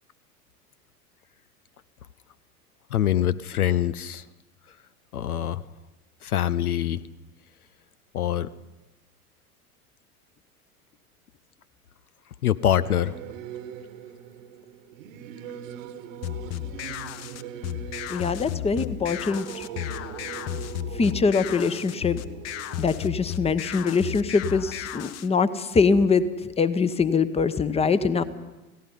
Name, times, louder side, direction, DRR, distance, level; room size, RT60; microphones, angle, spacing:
voice 1, 2.9-4.2 5.1-5.6 6.2-7.0 8.1-8.5 12.4-13.2, left 10 dB, 75° left, 16 dB, 0.8 m, -24 dB
Singing / Musical instrument, 12.8-24.6, right 9 dB, 55° right, 1.6 m, -42 dB
sound 1, 16.2-25.3, left 12 dB, 35° left, 1.0 m, -34 dB
voice 2, 18.1-19.7 21.0-22.2 22.8-26.3 26.6-28.2, left 4 dB, 15° left, 13 dB, 1.0 m, -23 dB
30.0 x 17.0 x 5.4 m, 1.1 s
figure-of-eight pair, 80°, 45 cm